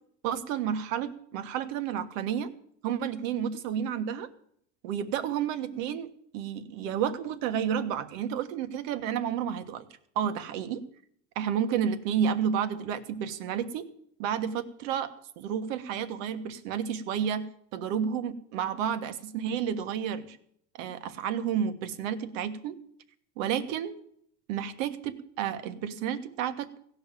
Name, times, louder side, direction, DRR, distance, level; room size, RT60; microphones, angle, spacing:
voice 1, 0.2-2.5 2.8-4.3 4.8-6.1 6.3-9.8 10.1-10.8 11.3-13.9 14.2-15.1 15.4-17.5 17.7-20.4 20.8-22.8 23.4-24.0 24.5-26.7, right 8 dB, 75° right, 10 dB, 1.4 m, -31 dB
16.5 x 5.7 x 9.0 m, 0.67 s
cardioid pair, 145°, 39 cm